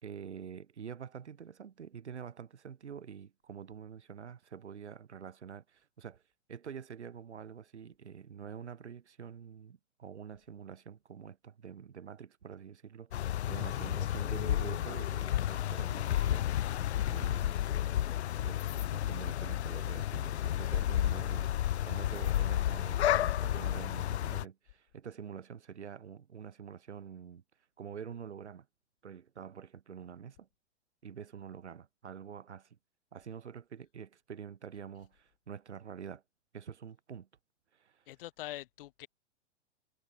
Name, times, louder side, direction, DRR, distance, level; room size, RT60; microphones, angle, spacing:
voice 1, 0.0-6.2 6.5-17.6 18.4-27.4 27.8-28.7 29.0-30.5 31.0-32.7 33.1-36.2 36.5-37.3 37.7-38.0, right 7 dB, 70° right, 1.7 m, -47 dB
sound 1, 13.1-24.4, left 12 dB, 65° left, 0.5 m, -32 dB
voice 2, 13.8-14.5 38.1-39.1, left 16 dB, 50° left, 3.0 m, -45 dB
figure-of-eight pair, 100°, 35 cm